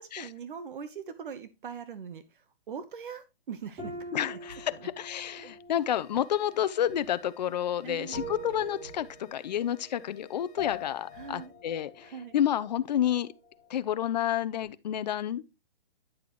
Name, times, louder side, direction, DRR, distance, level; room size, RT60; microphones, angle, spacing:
voice 1, 0.0-4.4 4.7-4.9 7.8-8.2 11.1-11.5 12.0-12.3, right 6 dB, 60° right, 1.1 m, -42 dB
sound 1, 3.8-13.7 13.9-14.6, left 1 dB, 20° right, 4.4 m, -44 dB
voice 2, 4.1-13.3 13.7-15.5, left 10 dB, 45° left, 0.7 m, -30 dB
sound 2, 5.8-11.7, left 11 dB, 15° left, 2.2 m, -59 dB
10.0 x 6.7 x 3.0 m
hypercardioid pair, 160°, 29 cm